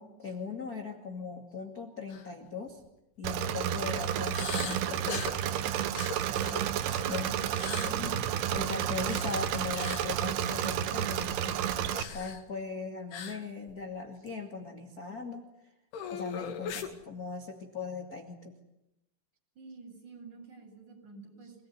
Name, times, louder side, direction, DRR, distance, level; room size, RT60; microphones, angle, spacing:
voice 1, 0.0-2.8 3.2-5.3 7.1-7.5 7.8-8.2 8.5-15.4 16.1-18.5, left 4 dB, 30° left, 2 dB, 1.7 m, -39 dB
sound 1, 2.1-2.3 2.7-2.9 4.3-5.4 5.9-7.1 7.5-7.9 9.0-9.4 9.7-10.1 11.9-12.4 13.1-13.4 13.7-13.8 14.3-14.4 15.9-16.9, left 7 dB, 80° left, 4.8 m, -39 dB
Engine / Mechanisms, 3.2-12.0, right 10 dB, 70° right, 2.8 m, -31 dB
voice 2, 6.3-8.0 19.6-21.6, right 3 dB, 35° right, 1 dB, 9.0 m, -49 dB
28.5 x 19.0 x 10.0 m, 0.91 s
omnidirectional pair, 5.5 m